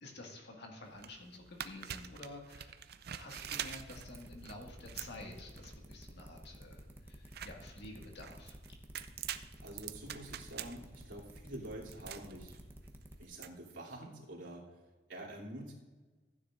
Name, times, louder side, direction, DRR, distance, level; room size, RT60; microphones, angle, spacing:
voice 1, 0.0-2.8 3.2-8.6, left 2 dB, 65° left, 1 dB, 2.0 m, -50 dB
sound 1, 0.9-13.5, right 10 dB, 60° right, 0.5 m, -46 dB
sound 2, 3.4-13.2, equal, 10° right, 1.0 m, -52 dB
voice 2, 9.6-12.6 13.2-14.6 15.1-15.7, right 1 dB, 85° right, -5 dB, 3.1 m, -47 dB
15.0 x 9.7 x 2.6 m, 1.3 s
head